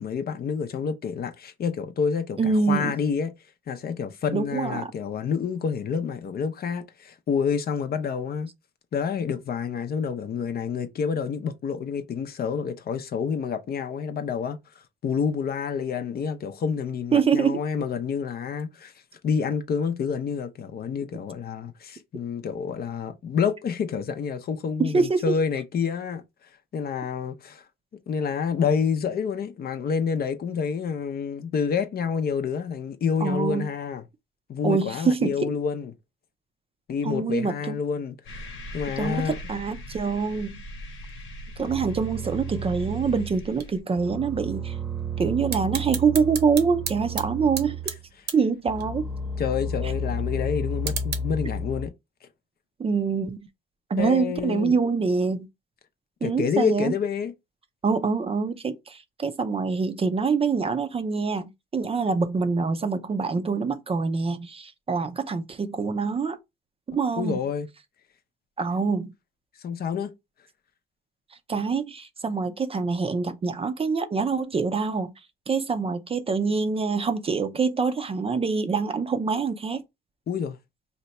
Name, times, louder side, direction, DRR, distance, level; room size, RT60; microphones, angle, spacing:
voice 1, 0.0-3.3 3.7-8.5 8.9-14.6 15.0-18.9 19.2-26.2 26.7-27.6 28.1-34.0 34.5-35.9 36.9-39.3 49.4-51.9 54.0-54.8 56.2-57.3 67.2-67.7 69.6-70.1 80.3-80.6, left 6 dB, 50° left, 0.6 m, -28 dB
voice 2, 2.4-2.9 4.3-4.9 17.1-17.6 24.8-25.3 33.2-33.6 34.6-35.5 37.0-37.8 39.0-40.6 41.6-44.8 45.2-47.9 48.3-49.1 52.8-53.4 53.9-55.5 56.2-56.9 57.8-66.4 66.9-67.4 68.6-69.1 71.5-75.1 75.5-79.8, right 5 dB, 30° right, 0.5 m, -25 dB
sound 1, 38.3-43.8, equal, 80° left, 1.1 m, -40 dB
sound 2, 41.7-43.5 44.0-48.0 48.7-51.9, right 1 dB, 10° right, 0.8 m, -32 dB
sound 3, 43.5-51.2, right 7 dB, 60° right, 0.8 m, -38 dB
2.8 x 2.2 x 4.0 m
cardioid pair, 90°, 20 cm